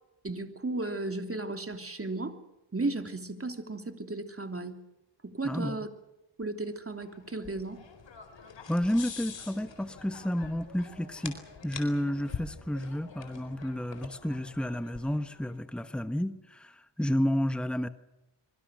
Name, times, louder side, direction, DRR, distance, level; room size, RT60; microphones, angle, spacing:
voice 1, 0.2-2.4 2.7-4.8 5.2-5.9 6.4-7.8, right 2 dB, 30° right, 6 dB, 3.1 m, -34 dB
voice 2, 5.4-5.8 8.7-17.9, equal, ahead, 10 dB, 1.2 m, -31 dB
sound 1, 7.0-15.5, left 5 dB, 80° left, 4.4 m, -45 dB
25.5 x 23.5 x 6.4 m, 0.94 s
wide cardioid pair, 80°, 44 cm